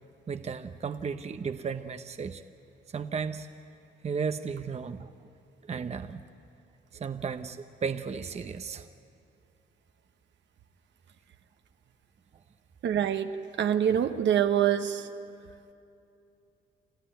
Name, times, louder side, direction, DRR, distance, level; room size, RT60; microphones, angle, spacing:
voice 1, 0.3-2.4 2.9-3.5 4.0-5.3 5.6-6.2 6.9-8.9, right 6 dB, 35° right, 9 dB, 0.8 m, -34 dB
voice 2, 12.8-13.3 13.6-15.1, right 9 dB, 65° right, 8 dB, 1.1 m, -25 dB
28.0 x 13.5 x 9.1 m, 2.7 s
cardioid pair, 90°, 20 cm